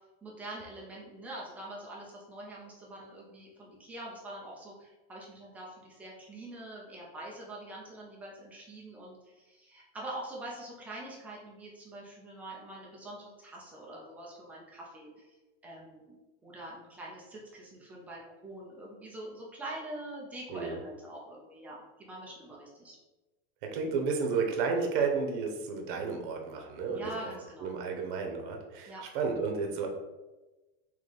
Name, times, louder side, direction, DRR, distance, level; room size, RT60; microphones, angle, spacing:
voice 1, 0.2-15.3 15.6-16.2 16.4-23.0 26.9-27.8 28.9-29.0, right 1 dB, 5° right, -4 dB, 0.3 m, -44 dB
voice 2, 20.5-20.8 23.6-27.3 27.6-29.9, right 5 dB, 55° right, 3 dB, 0.8 m, -32 dB
3.9 x 3.1 x 3.3 m, 1.1 s
supercardioid pair, 170°, 31 cm